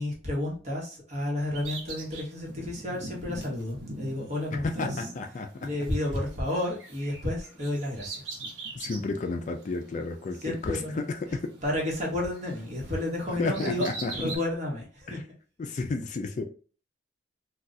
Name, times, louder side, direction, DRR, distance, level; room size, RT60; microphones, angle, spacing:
voice 1, 0.0-4.9 5.6-8.2 10.4-11.0 11.6-13.9 14.2-15.2, left 1 dB, 40° right, 1.1 m, -31 dB
Bird vocalization bird call bird song, 1.5-6.2 6.4-9.2 9.6-9.7 10.6-12.1 12.3-14.4, right 2 dB, 80° right, 0.9 m, -40 dB
voice 2, 4.5-5.7 8.7-11.5 13.4-14.1 15.1-15.2 15.6-16.4, left 3 dB, 40° left, 0.3 m, -32 dB
2.4 x 2.3 x 4.0 m
head